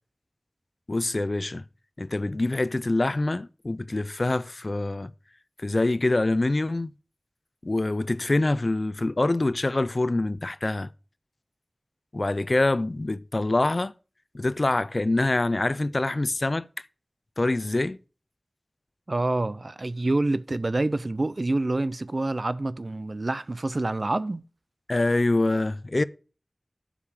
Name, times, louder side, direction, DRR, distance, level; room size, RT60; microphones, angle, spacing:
voice 1, 0.9-1.6 2.0-5.1 5.6-6.9 7.6-10.9 12.1-13.9 14.3-16.7 17.4-18.0 24.9-26.0, left 2 dB, 65° left, 0.4 m, -25 dB
voice 2, 19.1-24.4, right 2 dB, 65° right, 0.4 m, -27 dB
8.5 x 4.9 x 7.1 m
wide cardioid pair, 50°, 0 cm